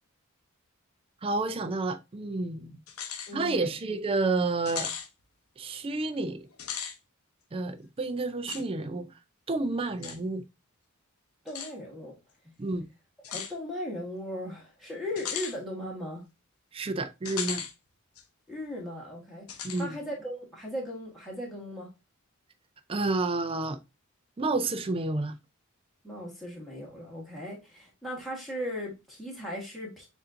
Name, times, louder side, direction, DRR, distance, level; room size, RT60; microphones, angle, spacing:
voice 1, 1.2-2.8 3.3-4.9 5.6-6.5 7.5-9.1 9.5-10.4 12.6-12.8 16.7-17.6 19.6-20.0 22.9-23.8 24.4-25.3, right 3 dB, 25° right, 0.4 m, -30 dB
sound 1, 2.9-3.3 3.7-3.8 4.7-5.1 6.5-7.0 8.5-8.6 10.0-10.2 11.5-11.7 13.2-13.5 15.2-15.6 17.2-17.7 18.2-18.3 19.5-19.9, left 7 dB, 85° left, 0.7 m, -36 dB
voice 2, 3.3-3.7 11.4-12.1 13.3-16.2 18.5-19.5 19.7-21.9 26.0-30.1, left 1 dB, ahead, 1.2 m, -37 dB
7.0 x 2.6 x 2.5 m
head